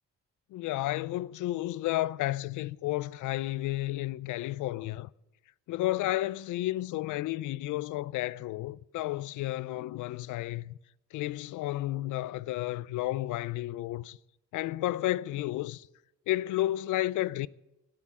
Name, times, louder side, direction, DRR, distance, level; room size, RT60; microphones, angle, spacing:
voice 1, 0.5-5.1 5.7-10.8 11.1-14.2 14.5-15.9 16.3-17.5, left 16 dB, 80° left, 0.5 m, -32 dB
12.5 x 9.7 x 7.4 m
cardioid pair, 90°, 30 cm